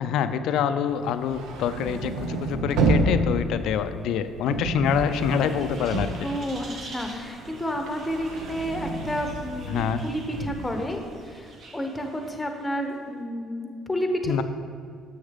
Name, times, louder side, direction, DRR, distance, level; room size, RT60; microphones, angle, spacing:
voice 1, 0.0-6.3 9.7-10.0 14.3-14.4, left 8 dB, 75° left, 11 dB, 0.3 m, -26 dB
sound 1, 1.0-7.1 7.4-10.7, right 2 dB, 85° right, 0.7 m, -29 dB
sound 2, 5.1-12.9, right 2 dB, 55° right, 1.3 m, -45 dB
voice 2, 6.2-11.0 11.3-11.5 11.7-14.4, equal, 15° left, 4 dB, 0.9 m, -30 dB
7.0 x 6.4 x 3.7 m, 2.2 s
supercardioid pair, 80°, 0 cm